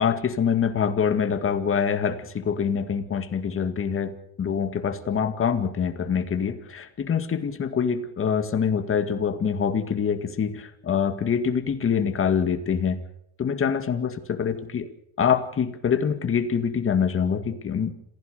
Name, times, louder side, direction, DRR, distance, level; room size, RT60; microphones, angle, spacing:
voice 1, 0.0-4.1 4.4-13.0 13.4-14.9 15.2-17.9, left 7 dB, 35° left, 8 dB, 2.1 m, -25 dB
27.0 x 16.0 x 6.7 m, 0.73 s
cardioid pair, 140°, 37 cm